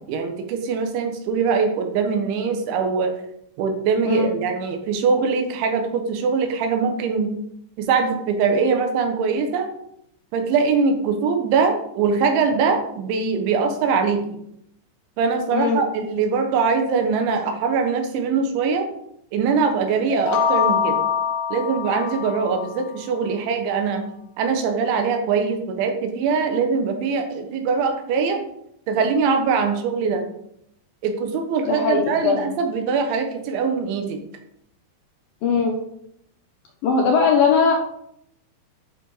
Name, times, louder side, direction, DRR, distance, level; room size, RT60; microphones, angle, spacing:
voice 1, 0.1-3.1 3.6-7.3 7.8-9.7 10.3-14.4 15.2-18.9 19.3-21.0 21.5-24.0 24.4-28.5 28.9-30.3 31.0-34.2, right 5 dB, 80° right, 4 dB, 3.6 m, -22 dB
voice 2, 15.5-15.8 31.7-32.5 35.4-35.8 36.8-37.8, left 5 dB, 65° left, 0 dB, 2.4 m, -19 dB
sound 1, 20.1-22.9, left 7 dB, 85° left, 3.3 m, -24 dB
11.5 x 6.3 x 4.9 m, 0.74 s
omnidirectional pair, 5.4 m